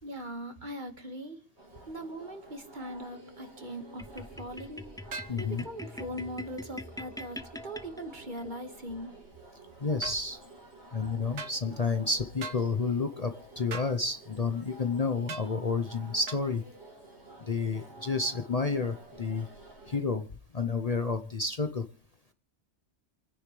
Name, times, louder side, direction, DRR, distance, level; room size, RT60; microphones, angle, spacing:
voice 1, 0.0-1.4 1.9-4.8 5.4-7.4 7.6-9.1, equal, 45° right, 5 dB, 2.1 m, -40 dB
sound 1, 1.6-20.0, right 2 dB, 70° right, 4.7 m, -51 dB
sound 2, 4.0-8.5, left 1 dB, 5° left, 0.5 m, -44 dB
sound 3, 5.1-5.4 10.0-10.2 11.4-11.6 12.4-12.6 13.7-14.0 15.3-15.5 16.3-16.4, right 4 dB, 85° right, 1.6 m, -39 dB
voice 2, 5.3-5.6 9.8-10.4 10.9-16.6 17.4-19.5 19.9-20.2 20.5-21.8, left 4 dB, 35° left, 8 dB, 0.9 m, -30 dB
28.5 x 10.0 x 3.3 m, 0.36 s
omnidirectional pair, 1.2 m